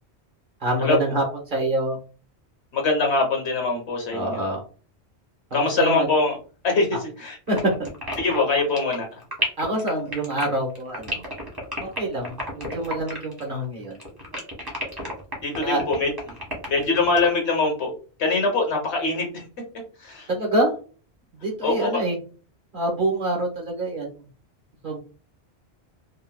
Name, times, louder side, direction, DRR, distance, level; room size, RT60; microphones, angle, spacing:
voice 1, 0.6-2.0 4.1-4.6 5.5-6.1 7.5-7.7 9.6-11.2 11.8-14.0 15.6-15.8 20.3-20.7 21.3-22.2 22.7-24.1 24.8-25.0, right 1 dB, 50° right, -1 dB, 1.2 m, -26 dB
voice 2, 2.7-4.5 5.5-6.4 6.6-7.4 8.2-9.2 15.4-16.1 16.7-17.9 18.2-19.4 20.0-20.3 21.6-22.0, left 3 dB, 70° left, 1 dB, 1.3 m, -23 dB
sound 1, 7.5-13.6 13.9-17.3, left 1 dB, 20° right, 1.2 m, -31 dB
3.9 x 2.3 x 2.2 m, 0.38 s
omnidirectional pair, 1.1 m